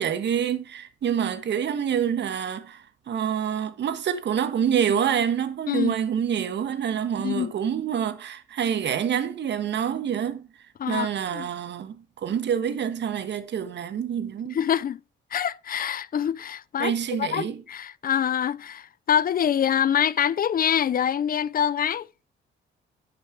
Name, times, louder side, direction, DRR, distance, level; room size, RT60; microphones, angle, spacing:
voice 1, 0.0-10.5 10.9-14.6 16.8-17.6, right 8 dB, 65° right, 1.6 m, -27 dB
voice 2, 7.2-7.5 10.8-11.5 14.5-15.0 15.3-16.9 17.2-22.1, left 9 dB, 45° left, 0.6 m, -25 dB
11.5 x 6.8 x 4.7 m
cardioid pair, 90°, 20 cm